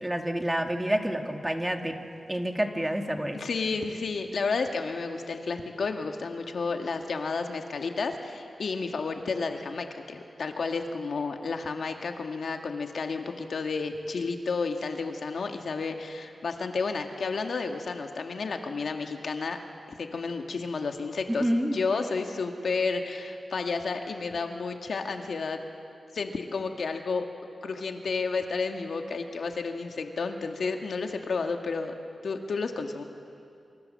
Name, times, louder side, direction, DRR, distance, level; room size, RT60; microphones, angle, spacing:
voice 1, 0.0-2.0 2.3-3.4 21.3-21.8, right 1 dB, 10° right, 4 dB, 1.8 m, -28 dB
voice 2, 3.3-19.6 20.0-25.6 26.1-27.3 27.6-32.0 32.2-33.0, left 4 dB, 75° left, 4 dB, 2.0 m, -31 dB
27.0 x 25.0 x 7.7 m, 2.5 s
wide cardioid pair, 140°, 0 cm